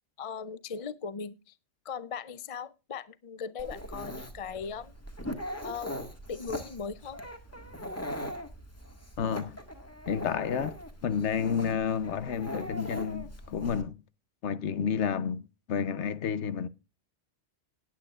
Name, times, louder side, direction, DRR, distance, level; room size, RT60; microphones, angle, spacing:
voice 1, 0.2-1.5 1.8-4.9 5.6-6.0 6.3-7.2, left 6 dB, 40° left, 0.5 m, -38 dB
Dog, 3.6-13.8, equal, 15° left, 1.7 m, -40 dB
voice 2, 9.2-9.6 10.1-10.8 11.0-14.0 14.4-16.7, left 7 dB, 75° left, 1.1 m, -30 dB
18.5 x 8.6 x 2.4 m
omnidirectional pair, 1.2 m